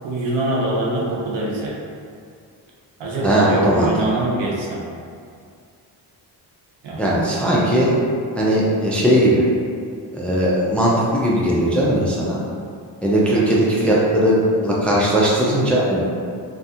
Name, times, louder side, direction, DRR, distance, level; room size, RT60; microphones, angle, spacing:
voice 1, 0.0-1.8 3.0-4.8 6.8-7.1 13.3-13.5, right 1 dB, 80° right, -4 dB, 0.7 m, -24 dB
voice 2, 3.2-3.9 7.0-8.0 8.3-9.4 10.1-12.4 13.0-14.4 14.6-16.0, right 1 dB, 5° left, -6 dB, 0.3 m, -18 dB
2.7 x 2.4 x 2.4 m, 2.3 s
cardioid pair, 95°, 43 cm